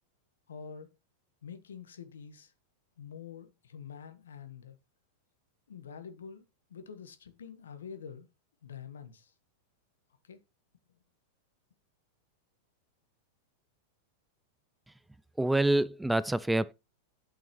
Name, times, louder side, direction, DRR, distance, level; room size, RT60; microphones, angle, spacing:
voice 1, 0.5-0.9 1.4-2.5 3.0-4.8 5.7-6.4 6.7-8.3 8.6-9.3 10.2-10.4, left 7 dB, 85° left, 1.2 m, -46 dB
voice 2, 15.4-16.7, right 1 dB, 5° right, 0.3 m, -26 dB
9.0 x 5.5 x 3.1 m
hypercardioid pair, 105°, 0 cm